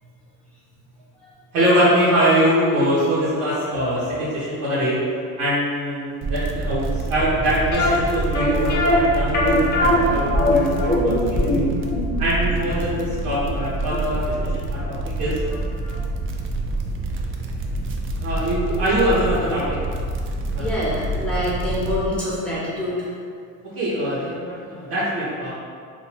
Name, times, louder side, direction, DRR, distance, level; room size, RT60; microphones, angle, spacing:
voice 1, 1.5-5.0 5.4-11.7 12.2-15.4 18.2-19.8 20.5-20.6 23.6-25.5, equal, 85° right, -11 dB, 1.0 m, -23 dB
sound 1, 6.2-22.0, right 3 dB, 40° right, 0.4 m, -27 dB
sound 2, 7.7-14.6 14.9-15.0 15.5-15.7 15.9-16.0, left 2 dB, 30° left, 0.8 m, -21 dB
voice 2, 20.5-23.1, left 1 dB, 5° left, -9 dB, 1.2 m, -26 dB
2.7 x 2.5 x 4.2 m, 2.2 s
cardioid pair, 100°, 34 cm